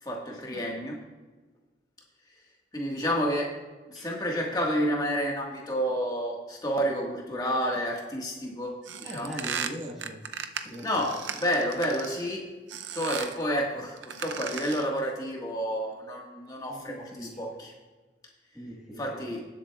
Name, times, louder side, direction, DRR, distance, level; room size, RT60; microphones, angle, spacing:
voice 1, 0.0-0.9 2.7-3.5 3.9-9.4 10.8-12.4 12.9-17.7 19.0-19.5, equal, 20° left, -1 dB, 1.5 m, -30 dB
sound 1, 8.8-12.3 12.7-13.4 14.0-15.0, right 7 dB, 85° right, 0.6 m, -36 dB
voice 2, 9.0-10.2 10.6-10.9 16.7-17.5 18.5-19.2, equal, 5° right, -5 dB, 1.5 m, -40 dB
18.5 x 7.7 x 2.3 m, 1.3 s
head